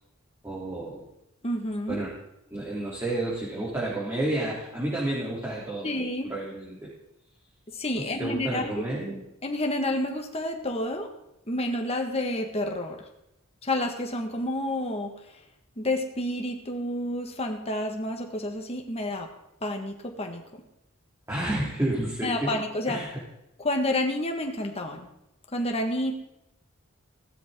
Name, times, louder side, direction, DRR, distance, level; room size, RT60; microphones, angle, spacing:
voice 1, 0.4-1.0 1.9-2.1 2.5-5.9 6.2-6.9 7.9-9.2 21.3-22.5 22.8-23.2, right 1 dB, 10° right, -6 dB, 3.3 m, -30 dB
voice 2, 1.4-2.0 5.8-6.3 7.7-8.7 9.4-11.1 11.5-13.0 13.6-15.1 15.8-19.3 19.6-20.6 22.2-23.0 23.6-25.1 25.5-26.1, left 1 dB, 30° left, 3 dB, 1.6 m, -29 dB
16.5 x 13.0 x 3.8 m, 0.85 s
head